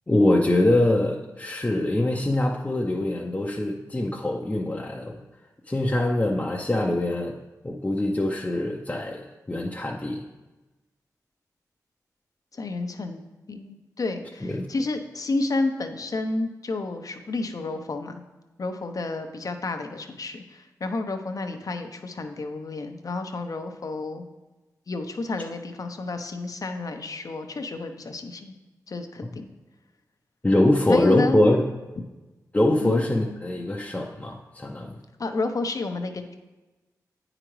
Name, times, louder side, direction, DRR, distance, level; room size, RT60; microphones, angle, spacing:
voice 1, 0.1-5.2 5.7-7.4 7.6-10.2 14.4-14.7 30.4-31.6 32.5-35.0, left 1 dB, 20° left, -1 dB, 0.6 m, -23 dB
voice 2, 12.5-13.2 13.5-18.2 18.6-24.2 24.9-28.6 28.9-29.5 30.9-31.4 32.8-33.0 35.2-36.3, left 3 dB, 60° left, 6 dB, 0.7 m, -30 dB
8.8 x 4.9 x 3.1 m, 1.1 s
cardioid pair, 45°, 7 cm